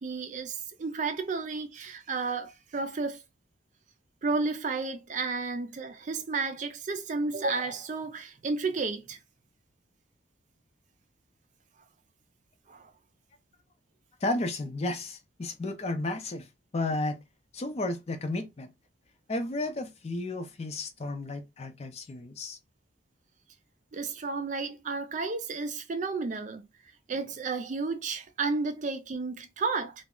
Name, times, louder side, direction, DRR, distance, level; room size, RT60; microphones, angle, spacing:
voice 1, 0.0-3.2 4.2-9.2 12.7-12.9 23.9-26.6 27.1-30.1, right 4 dB, 40° right, 0.4 m, -32 dB
voice 2, 14.2-16.5 16.7-17.2 17.5-18.7 19.3-22.6, left 2 dB, 35° left, 0.4 m, -33 dB
2.3 x 2.0 x 3.6 m
head